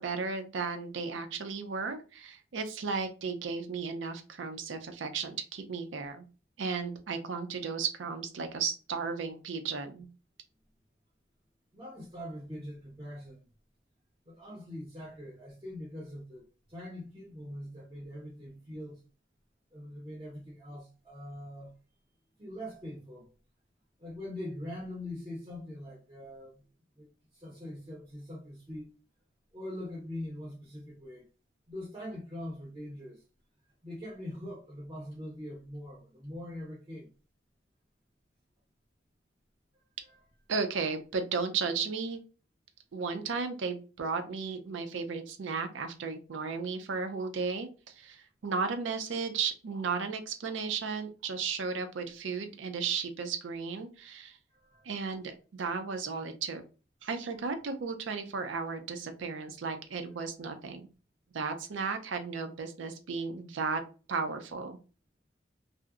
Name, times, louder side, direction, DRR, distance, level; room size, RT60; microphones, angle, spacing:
voice 1, 0.0-6.2 6.6-10.1 40.5-42.2 42.9-54.4 54.8-56.6 57.0-60.9 61.3-63.8 64.1-64.8, right 5 dB, 80° right, 0.5 m, -34 dB
voice 2, 11.7-13.5 14.2-19.0 19.7-21.7 22.4-23.3 24.0-26.6 26.9-28.9 29.5-31.3 31.7-33.2 33.8-37.1 39.7-40.2 54.5-54.9, left 1 dB, 25° right, 0.6 m, -43 dB
2.6 x 2.0 x 2.4 m
head